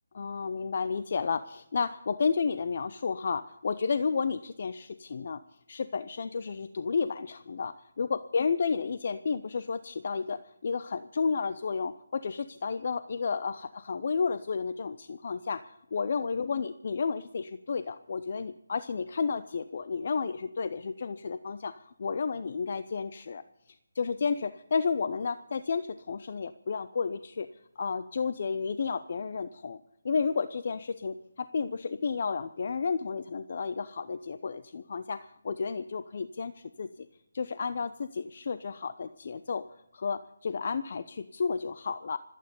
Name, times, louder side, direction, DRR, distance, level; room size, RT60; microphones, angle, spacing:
voice 1, 0.1-5.4 5.7-27.5 27.8-29.8 30.0-37.1 37.3-39.7 39.9-42.2, left 5 dB, 45° left, 12 dB, 0.6 m, -32 dB
25.5 x 9.3 x 5.4 m, 0.86 s
figure-of-eight pair, 165°, 0 cm